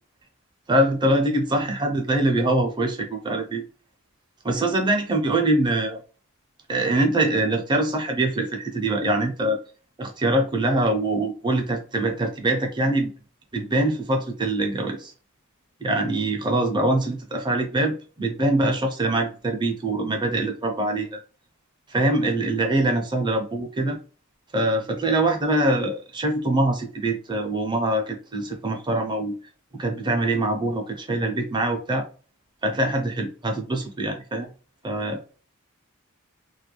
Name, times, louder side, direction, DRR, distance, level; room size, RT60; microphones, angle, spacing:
voice 1, 0.7-3.6 4.4-6.0 6.7-9.6 10.0-13.1 13.5-15.1 15.8-21.2 21.9-24.0 24.5-29.4 29.7-32.0 32.6-34.5 34.8-35.2, right 1 dB, 20° right, 0.6 m, -23 dB
2.3 x 2.2 x 3.1 m
head